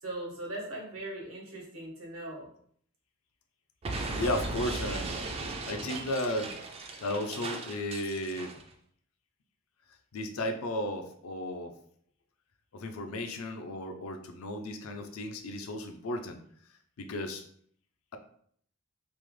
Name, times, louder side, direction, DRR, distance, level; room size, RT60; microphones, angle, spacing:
voice 1, 0.0-2.5, right 1 dB, 80° right, -3 dB, 1.1 m, -39 dB
Explosion, 3.8-8.6, right 2 dB, 30° right, 0.3 m, -37 dB
voice 2, 4.1-5.1 5.7-6.5 7.0-8.6 10.1-11.7 12.7-16.4 17.0-17.4, left 1 dB, 90° left, 6 dB, 0.5 m, -34 dB
3.2 x 2.1 x 3.2 m, 0.63 s
head